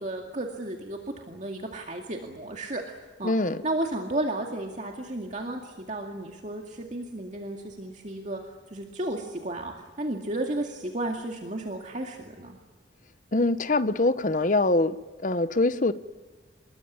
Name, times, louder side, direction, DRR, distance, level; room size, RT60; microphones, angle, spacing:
voice 1, 0.0-3.3 3.6-12.6, right 1 dB, 40° right, 2 dB, 2.2 m, -33 dB
voice 2, 3.2-3.6 13.3-15.0 15.2-15.9, left 2 dB, 45° left, 13 dB, 0.9 m, -23 dB
26.0 x 21.5 x 9.8 m, 1.4 s
head